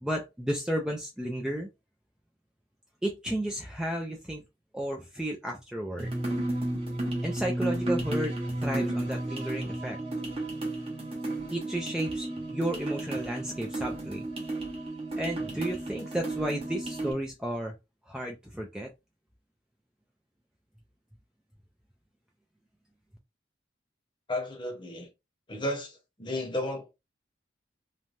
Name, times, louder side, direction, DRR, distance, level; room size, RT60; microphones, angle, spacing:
voice 1, 0.0-1.7 3.0-4.4 4.7-6.1 7.2-8.3 8.6-10.0 11.5-14.3 15.2-17.7 18.1-18.9, right 1 dB, 5° right, 0.3 m, -33 dB
sound 1, 6.0-17.1, right 1 dB, 30° right, 0.8 m, -33 dB
voice 2, 24.3-25.1 25.5-26.9, left 1 dB, 25° left, 0.8 m, -33 dB
3.1 x 2.2 x 2.5 m
head